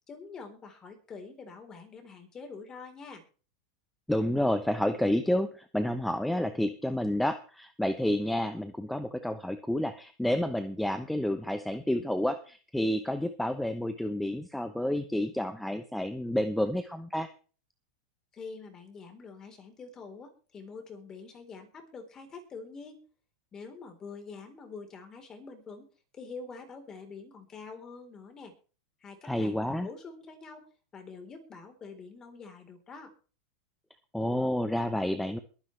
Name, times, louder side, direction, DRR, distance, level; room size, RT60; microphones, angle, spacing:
voice 1, 0.1-3.2 18.3-23.0 23.5-25.9 26.1-28.5 29.0-30.7 30.9-33.1, left 4 dB, 20° left, 5 dB, 4.0 m, -46 dB
voice 2, 4.1-17.3 29.2-29.9 34.1-35.4, left 1 dB, ahead, 9 dB, 0.9 m, -30 dB
22.0 x 9.8 x 3.4 m, 0.38 s
supercardioid pair, 140°, 3 cm